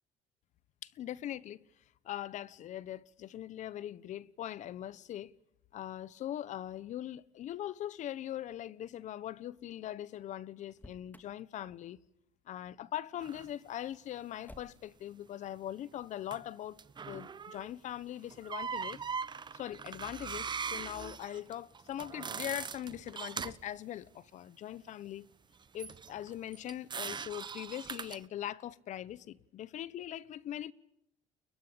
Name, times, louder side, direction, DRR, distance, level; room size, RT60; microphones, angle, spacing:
voice 1, 0.8-1.6 2.0-5.4 5.7-12.0 12.5-16.8 17.1-19.0 19.5-25.3 25.7-30.7, left 12 dB, 60° left, 1.2 m, -41 dB
Motor vehicle (road), 10.7-11.4 14.4-15.0, left 1 dB, 10° left, 2.6 m, -54 dB
sound 1, 13.2-13.5 16.3-16.4 16.8-17.7 18.3-23.7 25.8-28.3, right 6 dB, 30° right, 1.1 m, -41 dB
29.5 x 22.5 x 8.8 m
supercardioid pair, 80°, 14 cm